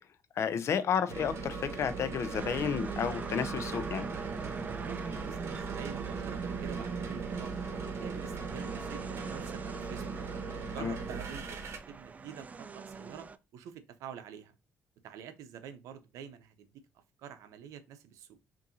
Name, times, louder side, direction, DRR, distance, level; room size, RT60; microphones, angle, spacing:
voice 1, 0.4-4.1 10.8-10.9, left 7 dB, 60° left, 0.5 m, -31 dB
sound 1, 1.1-11.8, right 4 dB, 55° right, 1.0 m, -39 dB
sound 2, 2.3-13.4, right 5 dB, 30° right, 0.3 m, -42 dB
voice 2, 4.8-7.5 7.8-10.2 10.6-13.3 13.5-14.5 15.0-16.8 17.2-18.4, right 8 dB, 85° right, 0.6 m, -47 dB
5.4 x 2.6 x 2.6 m
cardioid pair, 80°, 5 cm